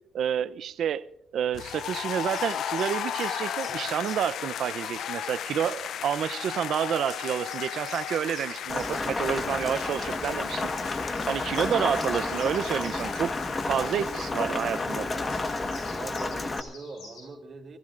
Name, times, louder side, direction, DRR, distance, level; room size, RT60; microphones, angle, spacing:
voice 1, 0.1-1.0 1.3-10.7 11.3-13.4 13.7-15.1, right 9 dB, 70° right, 0.7 m, -29 dB
sound 1, 1.5-16.1, left 10 dB, 70° left, 0.5 m, -36 dB
sound 2, 2.3-4.5 5.4-5.6 6.5-6.6 6.8-13.1 13.7-14.1 15.3-17.2, left 2 dB, 90° left, 7.8 m, -50 dB
Rain, 8.7-16.6, left 2 dB, 25° left, 1.4 m, -31 dB
voice 2, 9.2-9.6 15.9-17.8, right 4 dB, 45° right, 3.1 m, -43 dB
30.0 x 15.5 x 2.6 m
cardioid pair, 90°, 0 cm